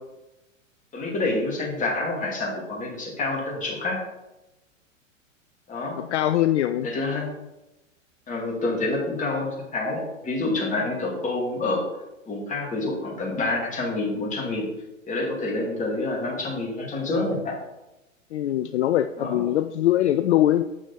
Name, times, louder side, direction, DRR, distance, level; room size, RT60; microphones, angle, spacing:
voice 1, 0.9-4.0 5.7-6.0 6.8-7.3 8.3-11.8 12.3-14.7 15.1-17.5 19.2-19.4, left 2 dB, 20° left, -2 dB, 2.5 m, -27 dB
voice 2, 6.0-6.9 18.3-20.6, left 13 dB, 60° left, 10 dB, 0.5 m, -22 dB
7.7 x 6.0 x 4.1 m, 0.98 s
figure-of-eight pair, 105°, 39 cm